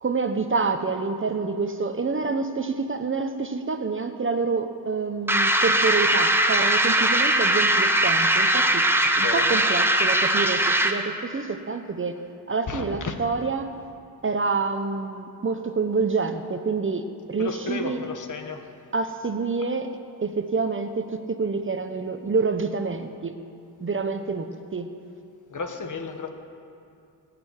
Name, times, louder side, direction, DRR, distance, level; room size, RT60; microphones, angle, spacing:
voice 1, 0.0-8.8 9.2-12.2 12.5-13.7 14.2-18.0 18.9-19.9 20.2-23.3 23.8-24.9, right 4 dB, 30° right, 8 dB, 0.9 m, -27 dB
sound 1, 5.3-11.1, right 1 dB, 5° right, 1.2 m, -20 dB
voice 2, 9.2-9.6 12.7-13.1 17.4-18.6 25.5-26.3, left 4 dB, 45° left, 5 dB, 1.7 m, -32 dB
21.0 x 7.0 x 9.9 m, 2.6 s
cardioid pair, 85°, 41 cm